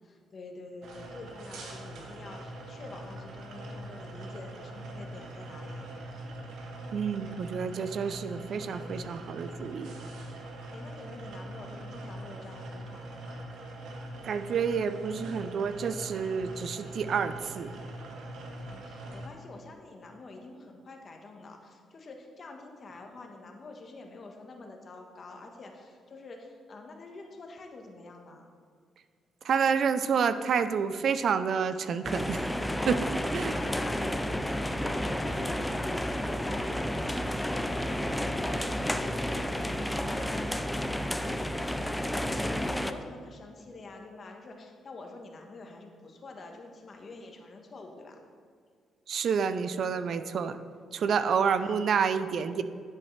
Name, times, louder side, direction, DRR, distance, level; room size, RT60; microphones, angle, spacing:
voice 1, 0.0-5.9 10.7-13.4 18.6-28.5 33.3-48.2 51.5-51.8, left 3 dB, 45° left, 3 dB, 1.2 m, -47 dB
sound 1, 0.8-19.3, right 1 dB, 75° right, 1.4 m, -42 dB
voice 2, 6.9-9.9 14.2-17.7 29.4-32.4 32.9-33.1 33.3-33.6 49.1-50.6 50.9-52.6, right 6 dB, 60° right, 12 dB, 0.4 m, -29 dB
sound 2, 32.0-42.9, equal, 5° left, 0.4 m, -31 dB
10.5 x 7.4 x 3.3 m, 2.1 s
cardioid pair, 90°, 0 cm